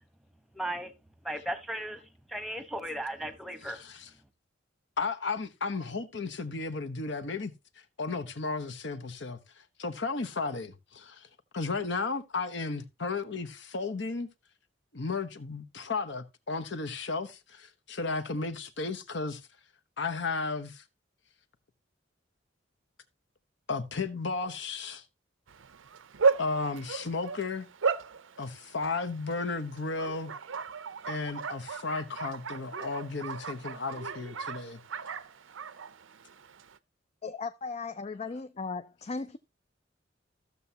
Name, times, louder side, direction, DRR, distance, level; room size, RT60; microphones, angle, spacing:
voice 1, 0.5-0.9 1.2-2.0 2.3-3.8, right 1 dB, ahead, 1.0 m, -36 dB
voice 2, 3.6-4.1 5.0-7.5 8.0-9.4 9.8-11.3 11.5-14.3 14.9-19.4 20.0-20.8 23.7-25.0 26.3-27.7 28.4-30.3 31.1-34.8, left 4 dB, 65° left, 1.0 m, -34 dB
Bark, 25.5-36.8, right 5 dB, 80° right, 0.6 m, -35 dB
voice 3, 37.2-39.4, left 4 dB, 35° left, 0.4 m, -37 dB
14.5 x 7.0 x 2.8 m
head